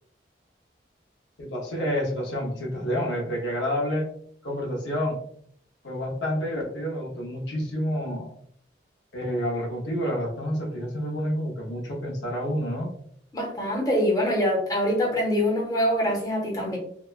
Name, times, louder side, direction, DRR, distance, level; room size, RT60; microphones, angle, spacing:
voice 1, 1.4-4.1 4.4-5.2 5.8-8.3 9.1-12.9, equal, 85° left, 0 dB, 0.7 m, -29 dB
voice 2, 13.3-16.8, equal, 20° left, -3 dB, 0.7 m, -24 dB
2.9 x 2.1 x 2.2 m, 0.64 s
head